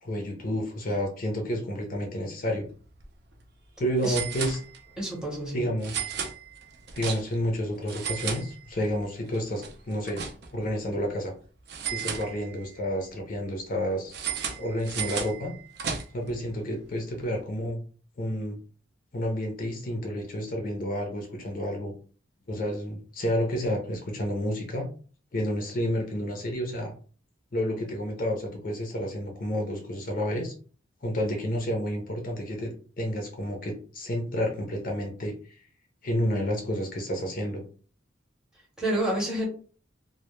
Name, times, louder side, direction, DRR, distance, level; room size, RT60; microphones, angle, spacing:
voice 1, 0.0-2.7 3.8-4.6 5.5-6.1 6.9-10.2 10.5-11.3 11.9-14.1 14.6-15.5 16.1-17.8 18.2-18.6 19.1-21.9 22.5-24.9 25.3-26.9 27.5-30.5 31.0-32.7 33.0-35.6 36.0-37.6, equal, 45° left, 2 dB, 0.5 m, -30 dB
sound 1, 2.8-3.0 3.3-3.4 4.0-5.1 5.8-7.5 7.8-9.0 9.3-10.7 11.7-12.8 14.1-16.3, right 7 dB, 55° right, 0.4 m, -35 dB
voice 2, 5.0-5.6 38.8-39.4, right 1 dB, 5° right, -4 dB, 0.7 m, -28 dB
2.1 x 2.1 x 3.0 m, 0.40 s
head